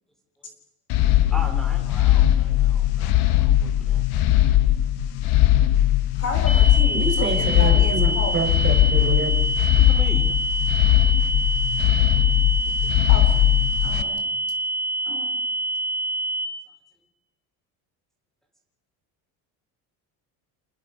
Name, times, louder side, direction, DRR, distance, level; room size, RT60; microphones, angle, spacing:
sound 1, 0.9-14.0, left 13 dB, 70° left, 1.3 m, -19 dB
voice 1, 1.3-4.0 9.8-10.4, right 1 dB, ahead, 0 dB, 3.4 m, -38 dB
voice 2, 6.1-8.5 12.7-12.8 13.1-14.2 15.1-15.4, left 4 dB, 40° left, 6 dB, 3.6 m, -33 dB
sound 2, 6.5-16.5, right 1 dB, 15° left, 4.2 m, -27 dB
voice 3, 6.9-9.4, right 4 dB, 30° right, 4 dB, 4.5 m, -27 dB
27.5 x 20.0 x 5.1 m, 0.99 s
cardioid pair, 130°, 39 cm